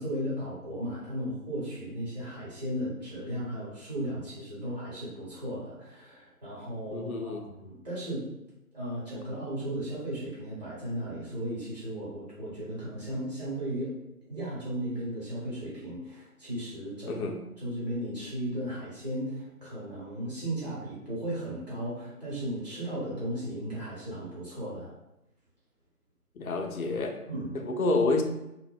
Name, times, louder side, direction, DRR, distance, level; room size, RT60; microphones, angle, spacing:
voice 1, 0.0-8.3 8.7-13.9 14.3-17.3 17.6-24.9 27.3-27.5, right 1 dB, 30° right, -9 dB, 1.0 m, -35 dB
voice 2, 6.9-7.4 17.0-17.4 26.4-27.2 27.5-28.2, left 2 dB, 70° left, 4 dB, 0.5 m, -28 dB
2.5 x 2.1 x 2.4 m, 0.88 s
figure-of-eight pair, 160°, 45 cm